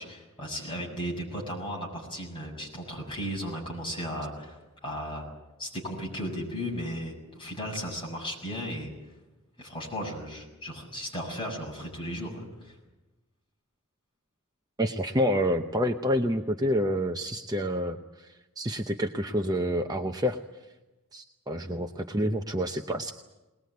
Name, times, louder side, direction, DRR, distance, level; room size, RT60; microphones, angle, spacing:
voice 1, 0.0-5.3 5.6-8.9 9.6-12.7, equal, 25° left, -2 dB, 6.8 m, -35 dB
voice 2, 14.8-20.4 21.1-23.1, equal, 15° right, 4 dB, 0.7 m, -28 dB
21.5 x 19.5 x 9.4 m, 1.1 s
head